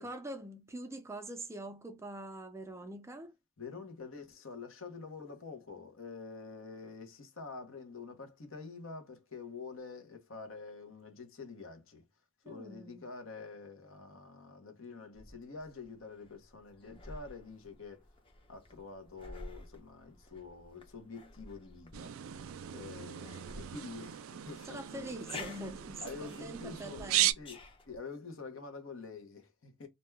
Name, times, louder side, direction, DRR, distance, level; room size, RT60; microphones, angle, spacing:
voice 1, 0.0-3.3 12.4-13.1 24.7-27.3, right 1 dB, 15° right, 0.4 m, -44 dB
voice 2, 3.6-12.0 12.4-18.1 18.5-22.4 22.7-25.4 26.0-27.1 27.4-29.9, left 4 dB, 70° left, 1.0 m, -47 dB
sound 1, 15.1-28.0, left 2 dB, 25° left, 0.7 m, -52 dB
sound 2, 21.9-27.3, right 13 dB, 80° right, 0.3 m, -36 dB
2.6 x 2.3 x 3.3 m
head